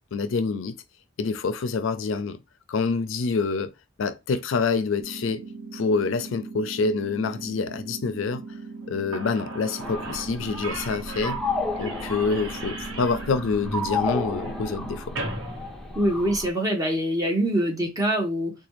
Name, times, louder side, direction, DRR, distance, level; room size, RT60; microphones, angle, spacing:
voice 1, 0.1-0.8 1.2-2.4 2.7-3.7 4.0-5.4 5.7-8.4 8.9-11.4 11.8-15.2, left 4 dB, 75° left, 0.4 m, -26 dB
sound 1, 5.0-15.0, right 3 dB, 50° right, 1.0 m, -40 dB
Slam / Squeak, 8.8-8.9 9.1-16.6, right 2 dB, 80° right, 1.0 m, -38 dB
sound 2, 9.8-16.5, left 3 dB, ahead, 0.6 m, -33 dB
voice 2, 15.9-18.5, right 1 dB, 20° right, 0.9 m, -24 dB
3.9 x 2.3 x 3.1 m
head